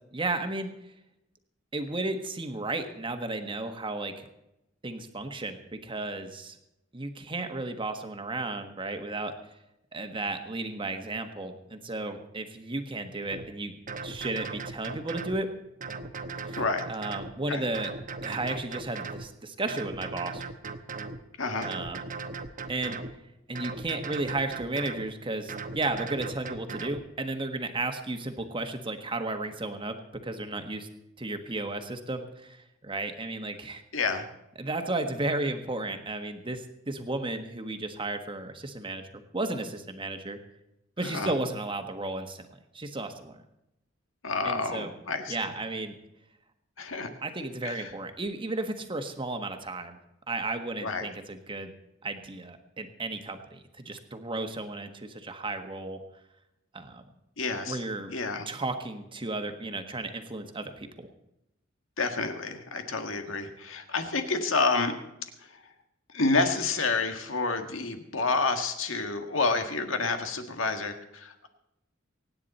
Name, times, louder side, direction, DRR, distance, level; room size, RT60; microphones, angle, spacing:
voice 1, 0.1-0.7 1.7-4.3 4.8-6.6 6.9-9.3 9.9-13.7 14.0-15.5 16.4-17.9 18.2-20.4 21.6-22.0 22.7-23.0 23.5-30.0 30.2-30.9 31.2-33.8 34.6-39.1 39.3-40.4 41.0-43.4 44.4-44.9 45.3-45.9 47.2-50.0 50.3-51.7 52.0-56.0 56.7-57.0 57.7-58.1 58.5-61.1, right 2 dB, 25° right, 6 dB, 1.4 m, -34 dB
sound 1, 13.3-13.5 13.9-15.4 15.8-17.3 17.7-19.3 19.7-21.2 21.6-23.1 23.6-25.1 25.5-27.0, right 4 dB, 40° right, 1.0 m, -38 dB
voice 2, 21.4-21.7 33.9-34.2 41.0-41.3 44.2-45.5 46.8-47.1 47.6-47.9 50.8-51.0 57.4-57.8 58.1-58.5 62.0-64.9 66.1-71.5, left 3 dB, 80° left, 6 dB, 1.8 m, -29 dB
24.0 x 9.7 x 4.2 m, 0.87 s
head